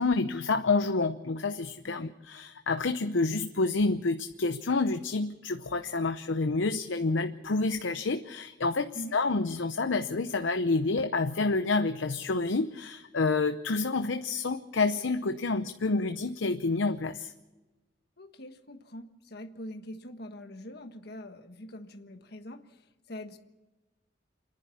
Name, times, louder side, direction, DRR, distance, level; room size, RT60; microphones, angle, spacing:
voice 1, 0.0-17.3, left 3 dB, 80° left, 8 dB, 0.8 m, -28 dB
voice 2, 18.2-23.4, left 1 dB, 55° left, 7 dB, 1.5 m, -44 dB
28.5 x 11.0 x 8.5 m, 1.1 s
head